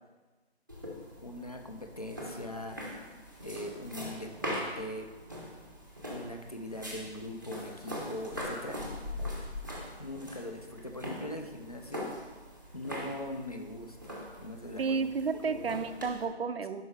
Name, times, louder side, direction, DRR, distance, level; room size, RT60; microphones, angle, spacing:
sound 1, 0.7-16.3, left 1 dB, 20° right, 0.6 m, -42 dB
voice 1, 1.2-2.8 3.4-5.1 6.1-8.8 10.0-12.1 12.7-14.1 14.4-15.1 15.5-15.8, left 1 dB, 35° left, 4 dB, 0.4 m, -41 dB
voice 2, 14.8-16.8, right 5 dB, 60° right, 10 dB, 0.5 m, -31 dB
5.5 x 4.6 x 4.6 m, 1.3 s
figure-of-eight pair, 165°, 34 cm